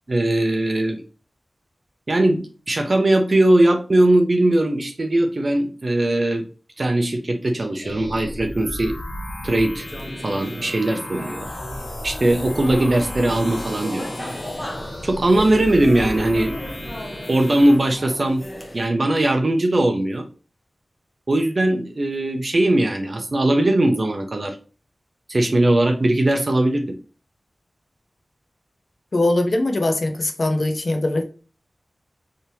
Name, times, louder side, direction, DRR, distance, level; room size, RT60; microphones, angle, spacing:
voice 1, 0.1-1.0 2.1-6.4 6.8-9.0 9.4-9.9 10.2-11.5 12.0-14.3 15.0-16.6 17.3-18.4 18.7-20.3 21.3-24.6 25.3-27.0, right 1 dB, 45° right, 4 dB, 0.6 m, -19 dB
sound 1, 7.8-17.8, left 1 dB, 90° left, 1.2 m, -34 dB
sound 2, 9.9-18.9, left 1 dB, 20° left, 0.9 m, -35 dB
voice 2, 29.1-31.2, left 2 dB, 55° left, 5 dB, 0.7 m, -21 dB
3.5 x 2.8 x 2.7 m, 0.37 s
wide cardioid pair, 85°, 0 cm